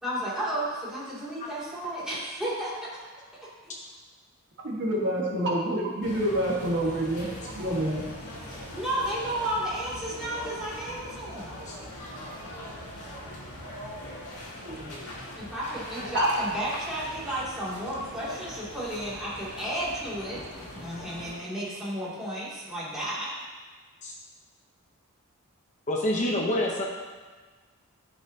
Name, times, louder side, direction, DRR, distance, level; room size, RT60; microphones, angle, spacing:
voice 1, 0.0-2.9 3.6-3.7 8.7-11.6 15.4-23.3, right 1 dB, 5° right, -9 dB, 2.5 m, -33 dB
voice 2, 4.6-8.1 14.6-14.9 16.1-16.3, right 1 dB, 55° right, -3 dB, 1.5 m, -27 dB
sound 1, 6.0-21.3, left 1 dB, 70° left, 2.2 m, -41 dB
voice 3, 25.9-26.8, left 1 dB, 35° left, -1 dB, 0.8 m, -27 dB
12.5 x 5.3 x 2.8 m, 1.4 s
head